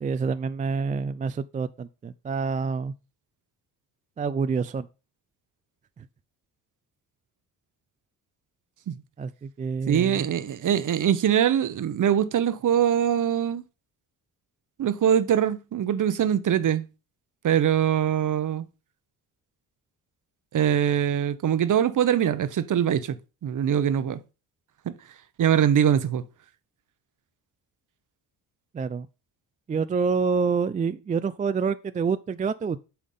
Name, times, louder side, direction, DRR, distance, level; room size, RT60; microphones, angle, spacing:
voice 1, 0.0-2.9 4.2-4.9 9.2-10.3 28.7-29.1 29.7-32.9, right 5 dB, 20° right, 0.3 m, -27 dB
voice 2, 9.9-13.6 14.8-16.8 17.4-18.6 20.5-23.2 23.4-24.2 25.4-26.2, right 9 dB, 50° right, 0.8 m, -23 dB
8.6 x 3.6 x 5.4 m
cardioid pair, 75°, 41 cm